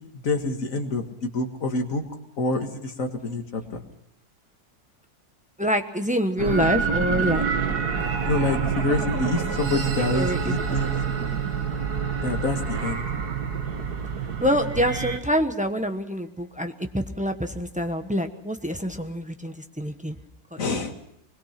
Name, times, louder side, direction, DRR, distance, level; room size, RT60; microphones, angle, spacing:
voice 1, 0.0-2.0 2.4-3.8 8.3-10.9 12.2-13.1 20.6-20.9, left 2 dB, 45° left, 3 dB, 2.2 m, -27 dB
voice 2, 5.6-7.4 10.1-10.5 14.4-20.2 20.5-20.6, equal, 5° right, 5 dB, 0.8 m, -26 dB
sound 1, 6.4-15.2, right 6 dB, 60° right, 2.1 m, -27 dB
24.0 x 21.0 x 5.9 m, 0.81 s
omnidirectional pair, 2.0 m